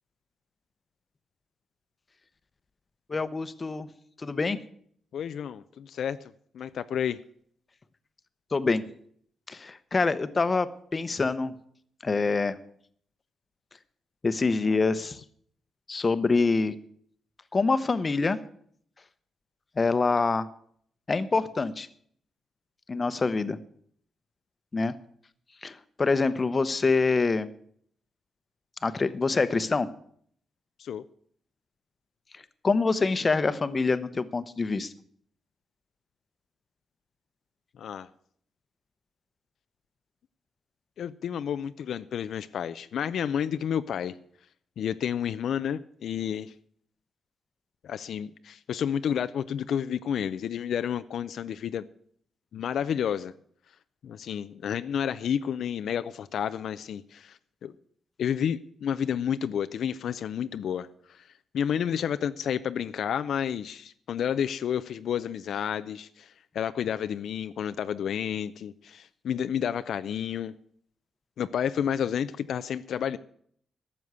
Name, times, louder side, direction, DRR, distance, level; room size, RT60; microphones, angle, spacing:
voice 1, 3.1-3.9 4.2-4.6 8.5-8.8 9.5-11.5 12.0-12.6 14.2-15.2 15.9-16.7 17.5-18.4 19.8-20.5 21.1-21.9 22.9-23.6 24.7-24.9 25.6-27.5 28.8-29.9 32.6-34.9, left 4 dB, 30° left, 14 dB, 0.8 m, -25 dB
voice 2, 5.1-6.2 6.5-7.2 30.8-31.0 37.8-38.1 41.0-44.1 44.8-46.5 47.8-51.8 52.5-53.3 54.0-57.7 58.2-61.2 61.5-70.5 71.4-73.2, left 8 dB, 70° left, 12 dB, 0.5 m, -30 dB
12.5 x 7.1 x 9.4 m, 0.63 s
cardioid pair, 115°, 0 cm